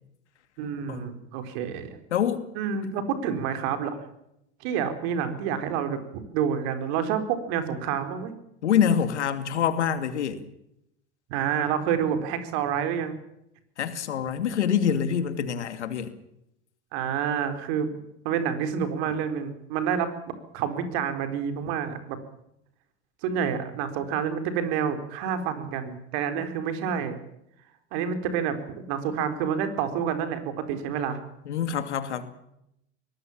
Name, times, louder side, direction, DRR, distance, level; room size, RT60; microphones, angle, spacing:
voice 1, 0.6-2.0 2.5-4.0 4.6-8.3 11.3-13.2 16.9-17.9 18.2-22.2 23.2-27.1 27.9-31.2, right 7 dB, 65° right, 8 dB, 4.4 m, -28 dB
voice 2, 2.1-2.5 8.6-10.5 13.8-16.1 31.5-32.2, left 8 dB, 85° left, 10 dB, 2.6 m, -25 dB
23.0 x 19.0 x 7.3 m, 0.80 s
hypercardioid pair, 85°, 34 cm